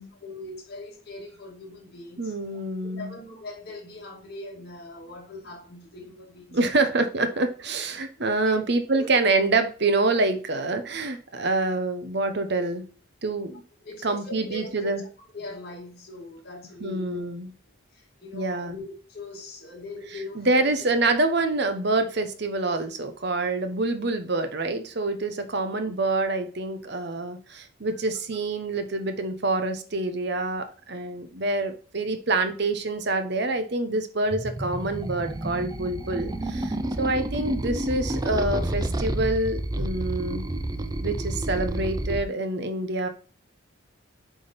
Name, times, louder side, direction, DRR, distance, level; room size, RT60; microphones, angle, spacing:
voice 1, 0.2-6.8 8.1-8.6 8.9-9.3 13.8-15.1 15.3-17.3 17.9-20.9 27.9-28.0, left 2 dB, 50° left, 2.4 m, -41 dB
voice 2, 2.2-3.1 6.5-12.8 13.2-13.6 14.0-15.0 16.8-17.5 18.3-18.8 20.4-40.5 41.0-43.1, right 2 dB, 55° right, 0.9 m, -26 dB
sound 1, 34.3-42.2, right 1 dB, 20° right, 0.5 m, -30 dB
8.1 x 3.8 x 5.2 m
head